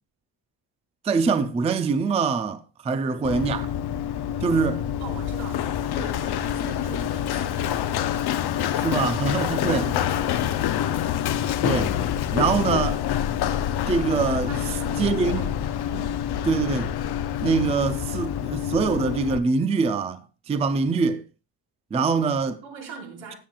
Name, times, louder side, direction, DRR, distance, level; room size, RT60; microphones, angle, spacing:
voice 1, 1.0-3.7 4.4-4.8 8.6-9.8 11.6-11.9 12.3-13.0 13.9-14.5 15.0-15.4 16.5-17.0 17.4-20.2 20.5-21.2 21.9-22.6, right 4 dB, 15° right, 0.4 m, -24 dB
Run, 3.2-19.4, left 10 dB, 55° left, 0.7 m, -26 dB
voice 2, 5.0-8.3 9.3-11.2 14.4-15.6 15.9-16.2 22.6-23.4, right 5 dB, 80° right, 4.8 m, -41 dB
18.5 x 7.5 x 2.3 m
cardioid pair, 170°, 45 cm